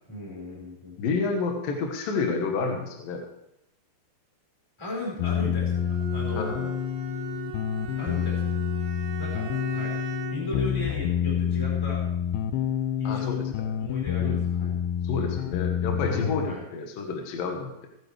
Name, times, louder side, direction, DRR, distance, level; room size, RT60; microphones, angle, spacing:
voice 1, 0.1-0.9 4.8-6.5 8.0-8.5 9.1-10.0 10.3-12.0 13.0-13.4 13.8-14.7 15.1-15.3 16.1-16.6, left 1 dB, 5° left, -3 dB, 3.9 m, -36 dB
voice 2, 1.0-3.2 6.4-6.7 13.0-13.7 14.2-14.8 15.0-17.9, left 4 dB, 65° left, 2 dB, 2.8 m, -30 dB
sound 1, 5.2-16.6, left 9 dB, 80° left, 2.5 m, -28 dB
Bowed string instrument, 5.7-10.6, right 8 dB, 80° right, 3.1 m, -38 dB
19.5 x 9.8 x 3.4 m, 0.85 s
omnidirectional pair, 5.0 m